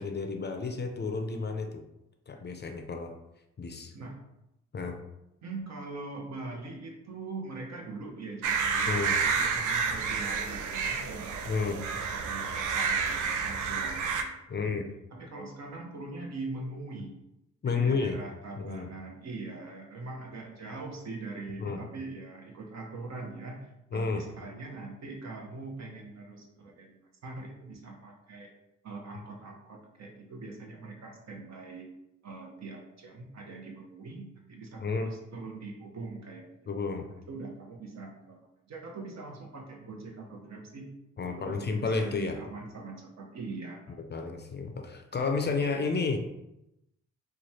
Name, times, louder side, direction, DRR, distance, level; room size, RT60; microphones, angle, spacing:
voice 1, 0.0-1.8 2.3-3.1 3.6-3.9 4.7-5.0 8.9-9.2 11.5-11.8 14.5-14.9 17.6-18.2 18.6-18.9 21.6-21.9 23.9-24.3 34.8-35.1 36.7-37.1 41.2-42.4 44.1-46.2, left 4 dB, 35° left, 5 dB, 0.5 m, -31 dB
voice 2, 5.4-11.5 11.9-14.3 14.6-14.8 15.1-17.2 17.6-27.0 27.2-28.5 28.8-31.9 32.2-40.9 41.3-44.0, right 3 dB, 60° right, 1 dB, 0.8 m, -42 dB
sound 1, 8.4-14.2, right 5 dB, 85° right, 0.5 m, -30 dB
3.1 x 2.2 x 4.2 m, 0.88 s
cardioid pair, 80°, 30 cm